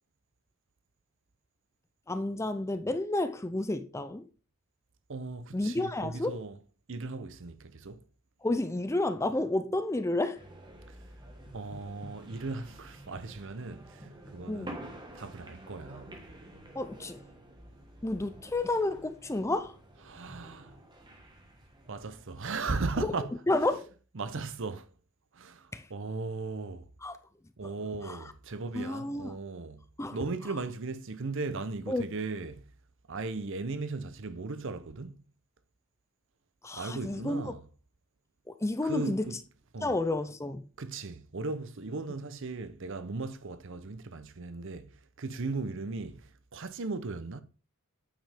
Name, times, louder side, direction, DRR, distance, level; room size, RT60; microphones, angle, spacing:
voice 1, 2.1-4.2 5.5-6.4 8.4-10.4 14.5-14.7 16.8-17.2 18.0-19.8 23.5-23.9 25.7-25.9 27.0-27.2 28.0-28.2 28.7-29.4 30.0-30.2 31.9-32.1 36.6-37.4 38.6-39.3 39.8-40.6, left 2 dB, 15° left, 0.5 m, -30 dB
voice 2, 5.1-6.6 6.9-8.0 11.5-14.8 15.1-16.3 20.1-20.8 21.9-23.3 24.1-24.9 25.3-26.8 27.6-29.8 30.1-32.6 33.1-35.2 36.7-37.6 38.8-39.4 39.7-40.0 40.8-47.4, right 3 dB, 55° right, 0.7 m, -37 dB
sound 1, 10.3-22.6, right 1 dB, 20° right, 1.5 m, -49 dB
9.0 x 5.2 x 3.5 m
head